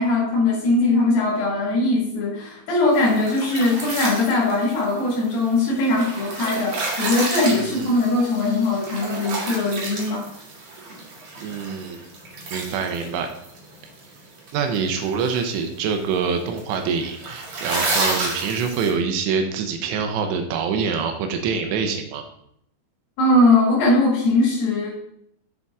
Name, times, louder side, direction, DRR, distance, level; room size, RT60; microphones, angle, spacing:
voice 1, 0.0-10.3 23.2-24.9, left 2 dB, 60° left, -6 dB, 3.5 m, -20 dB
sound 1, 2.9-18.9, right 2 dB, 65° right, 1.7 m, -31 dB
voice 2, 7.5-7.9 11.4-12.0 12.5-13.3 14.5-22.2, right 6 dB, 80° right, 4 dB, 2.6 m, -25 dB
7.5 x 6.8 x 3.5 m, 0.72 s
omnidirectional pair, 5.9 m